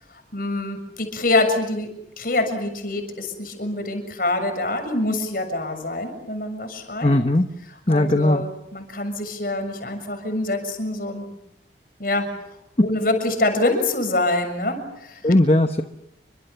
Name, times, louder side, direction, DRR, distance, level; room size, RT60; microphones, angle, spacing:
voice 1, 0.3-1.9 2.2-7.1 7.7-11.3 12.0-12.3 12.8-15.2, left 2 dB, 55° left, 6 dB, 7.0 m, -25 dB
voice 2, 7.0-7.4 7.9-8.4 12.8-12.9 15.2-15.8, left 1 dB, 35° left, 7 dB, 1.1 m, -18 dB
30.0 x 25.5 x 7.1 m, 0.80 s
head